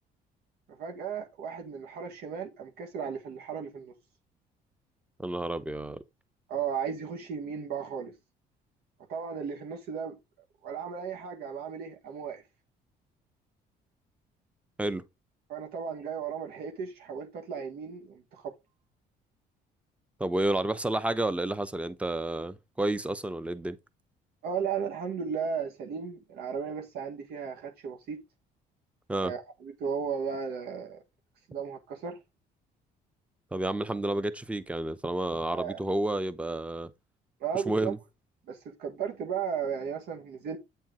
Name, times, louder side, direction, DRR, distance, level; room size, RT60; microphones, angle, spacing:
voice 1, 0.7-3.9 6.5-8.1 9.1-10.2 10.6-12.4 15.5-18.5 24.4-28.2 29.2-31.0 31.5-32.2 35.5-35.8 37.4-37.9 38.5-40.6, right 6 dB, 70° right, 1.6 m, -35 dB
voice 2, 5.2-6.0 14.8-15.0 20.2-23.8 29.1-29.3 33.5-36.9 37.7-38.0, right 1 dB, 5° right, 0.8 m, -30 dB
8.5 x 4.6 x 3.8 m
cardioid pair, 110°, 17 cm